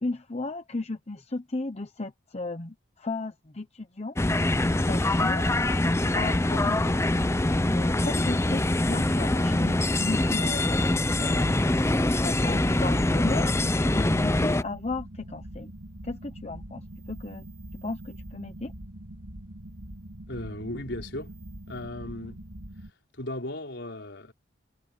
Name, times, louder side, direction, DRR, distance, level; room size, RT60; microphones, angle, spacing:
voice 1, 0.0-4.2 4.9-5.6 6.1-7.0 7.5-10.8 11.2-11.7 12.1-13.5 13.8-15.7 16.0-17.4 17.8-18.7, left 2 dB, 35° left, 0.9 m, -35 dB
sound 1, 4.2-14.6, left 1 dB, 15° left, 0.6 m, -24 dB
sound 2, 12.2-22.9, right 1 dB, 65° right, 4.6 m, -43 dB
voice 2, 20.3-21.3 21.7-22.4 23.2-24.3, left 1 dB, 65° left, 5.2 m, -36 dB
head